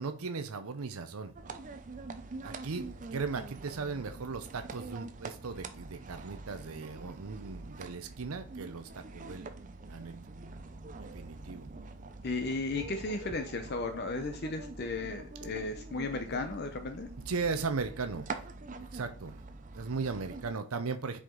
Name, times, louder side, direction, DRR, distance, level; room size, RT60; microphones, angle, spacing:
voice 1, 0.0-1.3 2.4-9.5 9.9-10.1 11.0-11.7 17.1-18.3 18.9-19.4 19.7-21.2, right 4 dB, 85° right, 0.7 m, -37 dB
sound 1, 1.4-20.5, right 3 dB, 35° right, 0.5 m, -45 dB
voice 2, 12.2-17.1, left 3 dB, 50° left, 0.7 m, -35 dB
7.6 x 5.0 x 3.8 m
head